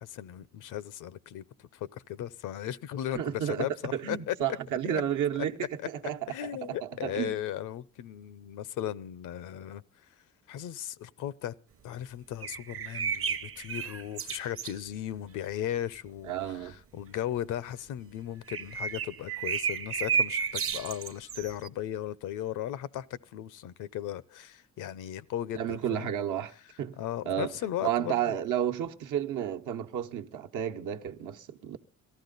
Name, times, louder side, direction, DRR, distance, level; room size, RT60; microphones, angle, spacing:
voice 1, 0.0-4.3 4.9-5.0 6.3-9.8 10.5-11.5 11.8-26.1 27.0-28.4, left 11 dB, 85° left, 0.7 m, -36 dB
voice 2, 3.1-3.7 3.9-5.6 5.9-7.4 16.2-16.8 25.5-26.5 26.8-27.0 27.2-27.5 27.8-31.8, right 10 dB, 80° right, 1.0 m, -32 dB
sound 1, 12.4-14.7 18.5-21.7, right 6 dB, 45° right, 0.8 m, -32 dB
17.5 x 13.5 x 3.9 m
cardioid pair, 90°, 30 cm